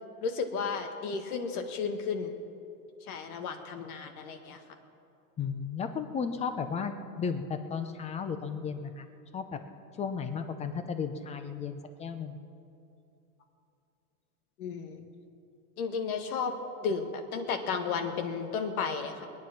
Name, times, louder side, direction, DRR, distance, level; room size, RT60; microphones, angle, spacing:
voice 1, 0.2-2.3 3.1-4.6 14.6-15.0 15.8-16.5 16.8-19.3, left 5 dB, 75° left, 6 dB, 1.9 m, -33 dB
voice 2, 5.4-9.1 9.3-9.6 10.0-12.4, left 6 dB, 15° left, 9 dB, 0.7 m, -34 dB
22.0 x 9.6 x 5.9 m, 2.7 s
supercardioid pair, 145°, 44 cm